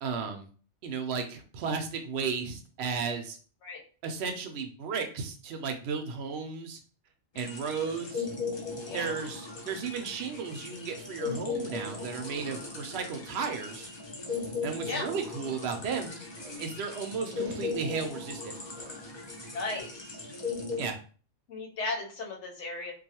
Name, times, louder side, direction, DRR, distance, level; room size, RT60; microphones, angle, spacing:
voice 1, 0.0-0.5 0.8-3.4 4.0-6.8 7.4-8.3 8.9-13.9 14.6-16.2 16.6-18.6 20.8-21.0, right 5 dB, 65° right, 5 dB, 0.7 m, -34 dB
sound 1, 7.3-20.9, left 4 dB, 40° left, 0.4 m, -38 dB
sound 2, 12.3-12.9 13.3-14.0 14.3-14.7 15.3-16.9 17.3-18.2 18.8-19.2, right 1 dB, 85° right, 0.3 m, -52 dB
voice 2, 19.5-20.2 21.5-22.9, left 3 dB, 70° left, 0 dB, 1.0 m, -35 dB
2.5 x 2.3 x 2.7 m, 0.39 s
omnidirectional pair, 1.3 m